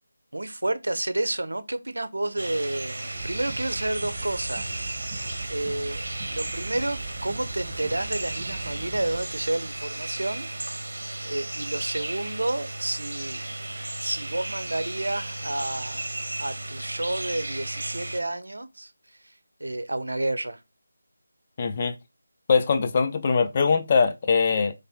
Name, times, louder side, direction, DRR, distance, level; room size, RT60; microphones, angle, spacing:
voice 1, 0.3-4.7 5.5-10.5 11.2-13.4 14.0-16.0 16.4-18.9 19.6-20.6, right 1 dB, 90° right, 0.8 m, -30 dB
sound 1, 2.4-18.2, right 2 dB, 75° right, 1.2 m, -34 dB
sound 2, 3.1-10.5, right 3 dB, 15° right, 0.7 m, -40 dB
voice 2, 21.6-21.9 22.5-24.7, left 5 dB, 30° left, 0.4 m, -22 dB
4.2 x 3.3 x 3.5 m
figure-of-eight pair, 170°, 0 cm